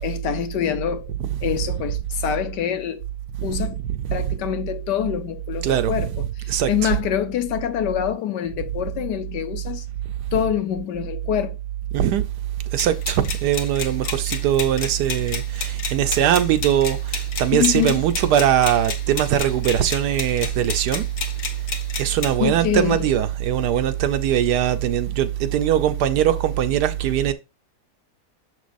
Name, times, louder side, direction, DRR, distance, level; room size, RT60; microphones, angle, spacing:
voice 1, 0.0-1.1 1.4-3.0 3.4-3.8 4.1-9.8 10.3-11.6 17.5-18.0 22.4-23.1, left 10 dB, 90° left, 1.5 m, -25 dB
voice 2, 3.9-4.4 5.6-6.9 11.9-12.2 12.7-21.0 22.0-27.3, right 10 dB, 80° right, 1.3 m, -21 dB
sound 1, 12.8-22.4, left 6 dB, 65° left, 1.4 m, -32 dB
6.8 x 6.2 x 2.6 m
omnidirectional pair, 1.8 m